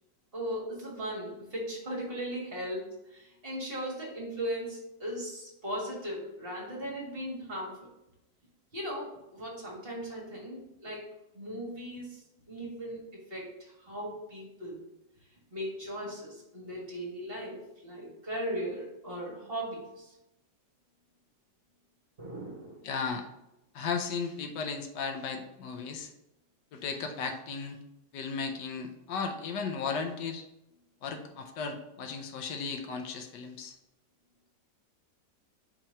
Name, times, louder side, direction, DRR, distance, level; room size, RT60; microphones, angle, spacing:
voice 1, 0.3-7.9 8.7-11.0 11.3-14.8 15.5-20.1 22.2-22.9, equal, 35° right, -3 dB, 1.8 m, -38 dB
voice 2, 22.8-23.2 23.7-26.1 26.7-27.8 28.1-30.4 31.0-33.7, left 5 dB, 80° left, 5 dB, 1.4 m, -35 dB
4.6 x 4.4 x 5.3 m, 0.89 s
omnidirectional pair, 1.9 m